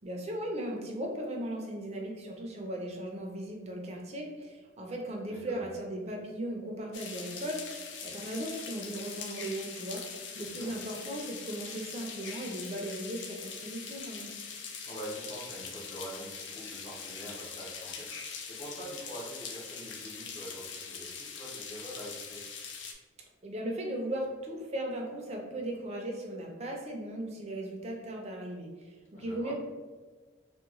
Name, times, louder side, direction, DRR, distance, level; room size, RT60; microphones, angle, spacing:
voice 1, 0.0-7.6 8.0-10.0 10.3-14.3 23.4-29.6, right 1 dB, 35° right, 0 dB, 0.5 m, -37 dB
voice 2, 5.3-5.6 10.3-10.7 14.9-22.4 29.1-29.5, equal, 40° left, -4 dB, 0.8 m, -44 dB
sound 1, 6.9-22.9, left 6 dB, 70° left, 0.4 m, -42 dB
2.9 x 2.2 x 3.6 m, 1.4 s
head